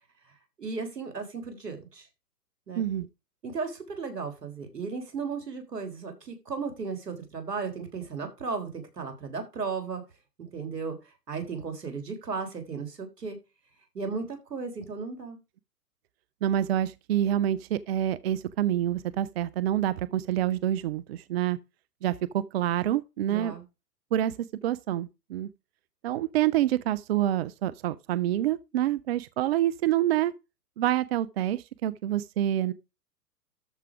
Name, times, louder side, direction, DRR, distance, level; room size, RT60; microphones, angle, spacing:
voice 1, 0.6-2.1 2.7-2.8 3.4-10.0 10.4-11.0 11.3-13.4 13.9-15.4 23.3-23.6, right 5 dB, 85° right, 3.6 m, -35 dB
voice 2, 2.8-3.1 16.4-21.6 22.0-23.5 24.1-24.3 24.6-25.5 26.0-30.3 30.8-32.7, right 12 dB, 40° right, 0.6 m, -27 dB
13.0 x 4.9 x 4.8 m
hypercardioid pair, 120°, 47 cm